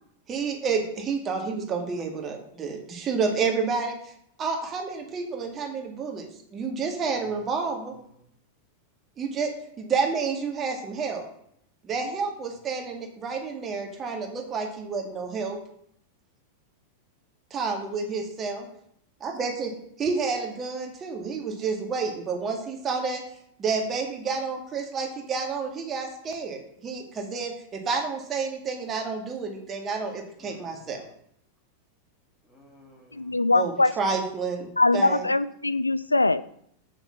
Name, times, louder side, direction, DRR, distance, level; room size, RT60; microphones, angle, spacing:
voice 1, 0.3-3.9 4.4-6.3 6.5-7.9 9.2-9.5 9.8-11.2 11.8-15.6 17.5-18.7 19.2-19.7 20.0-23.2 23.6-31.0 33.5-35.3, right 5 dB, 25° right, 2 dB, 2.1 m, -29 dB
voice 2, 7.0-7.3 7.7-8.3 30.4-31.1 32.4-33.4, left 1 dB, 15° left, -2 dB, 3.1 m, -55 dB
voice 3, 33.1-33.9 34.8-36.4, left 2 dB, 80° left, 16 dB, 0.4 m, -22 dB
7.7 x 6.9 x 6.0 m, 0.71 s
figure-of-eight pair, 90°, 0 cm